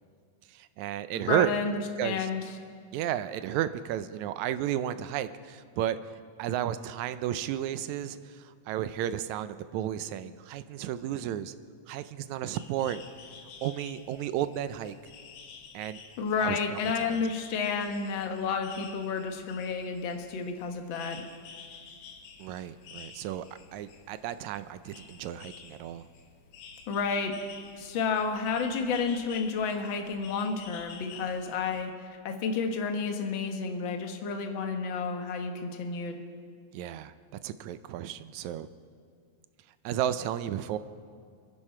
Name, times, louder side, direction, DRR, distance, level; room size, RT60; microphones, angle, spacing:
voice 1, 0.5-1.5 2.0-2.3 2.9-6.0 6.4-11.5 11.9-13.0 13.6-14.9 15.7-16.0 16.4-17.2 22.4-23.5 23.7-26.1 36.7-37.1 37.4-38.7 39.9-40.8, right 11 dB, 80° right, 12 dB, 1.8 m, -33 dB
voice 2, 1.1-2.4 16.2-21.2 26.9-27.3 27.8-31.9 32.2-36.2, left 5 dB, 55° left, 5 dB, 1.5 m, -31 dB
sound 1, 12.5-31.8, left 6 dB, 75° left, 2.5 m, -50 dB
28.0 x 11.0 x 4.4 m, 2.1 s
omnidirectional pair, 3.6 m